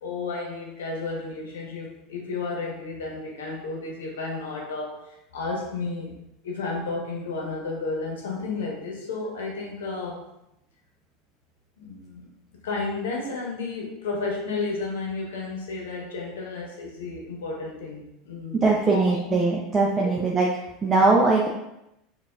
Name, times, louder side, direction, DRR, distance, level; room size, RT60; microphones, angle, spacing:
voice 1, 0.0-6.1 6.4-10.2 11.8-12.3 12.6-19.4 20.0-20.1, left 3 dB, 90° left, -1 dB, 1.0 m, -32 dB
voice 2, 18.5-20.5 20.8-21.5, right 3 dB, 20° right, -2 dB, 0.5 m, -21 dB
4.4 x 2.5 x 2.4 m, 0.86 s
supercardioid pair, 105°, 0 cm